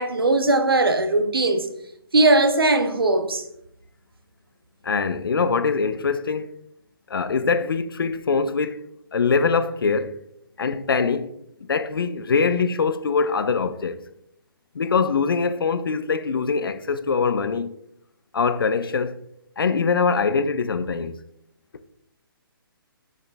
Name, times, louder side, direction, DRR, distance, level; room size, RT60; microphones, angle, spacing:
voice 1, 0.0-1.7 2.1-3.4, right 2 dB, 80° right, 1.1 m, -19 dB
voice 2, 4.8-6.5 7.1-8.8 9.1-10.2 10.6-11.3 11.6-14.0 14.7-17.8 18.3-19.2 19.6-21.2, left 5 dB, 70° left, 0.6 m, -23 dB
7.1 x 6.0 x 3.2 m
figure-of-eight pair, 140°, 12 cm